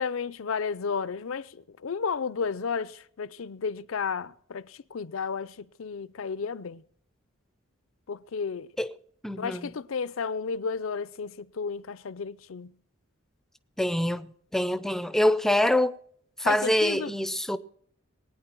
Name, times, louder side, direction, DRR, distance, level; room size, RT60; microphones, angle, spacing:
voice 1, 0.0-6.8 8.1-8.7 9.4-12.7 16.4-17.1, left 5 dB, 75° left, 0.5 m, -32 dB
voice 2, 9.2-9.6 13.8-14.3 14.5-15.9 16.4-17.6, left 1 dB, ahead, 0.5 m, -25 dB
21.5 x 9.6 x 4.5 m
head